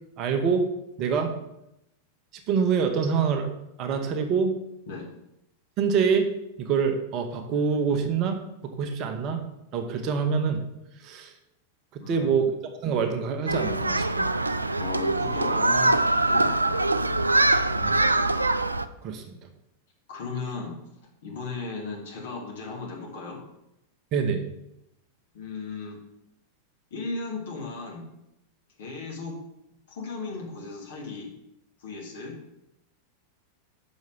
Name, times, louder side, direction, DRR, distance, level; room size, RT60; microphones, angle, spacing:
voice 1, 0.2-0.7 1.0-1.4 2.5-3.5 3.8-4.6 5.8-6.3 6.6-9.5 9.7-10.6 11.0-11.3 11.9-12.5 12.8-14.3 17.5-17.9 19.0-19.4 24.1-24.5, right 6 dB, 35° right, 5 dB, 1.1 m, -26 dB
voice 2, 12.0-12.3 14.8-16.7 20.1-20.7 21.2-23.4 25.3-26.0 26.9-28.1 28.8-29.3 29.9-31.3 31.8-32.3, left 4 dB, 60° left, -2 dB, 2.7 m, -36 dB
Human group actions, 13.5-18.9, right 2 dB, 80° right, 0.4 m, -23 dB
6.3 x 5.3 x 7.0 m, 0.84 s
figure-of-eight pair, 90°, 0 cm